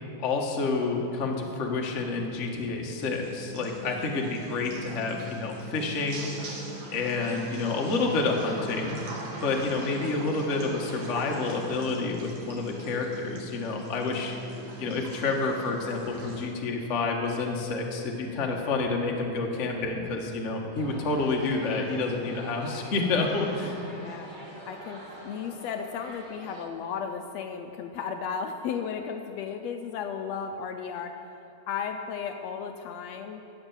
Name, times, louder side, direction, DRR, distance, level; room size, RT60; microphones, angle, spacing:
voice 1, 0.2-14.3 14.8-23.8, left 3 dB, 45° left, 0 dB, 0.9 m, -29 dB
sound 1, 2.9-16.4, right 2 dB, 70° right, 3.2 m, -42 dB
sound 2, 20.7-26.6, right 1 dB, 25° right, 1.0 m, -45 dB
voice 2, 24.0-24.3 24.6-31.2 31.7-33.4, left 7 dB, 80° left, 5 dB, 1.7 m, -34 dB
17.0 x 6.8 x 7.2 m, 2.9 s
omnidirectional pair, 3.3 m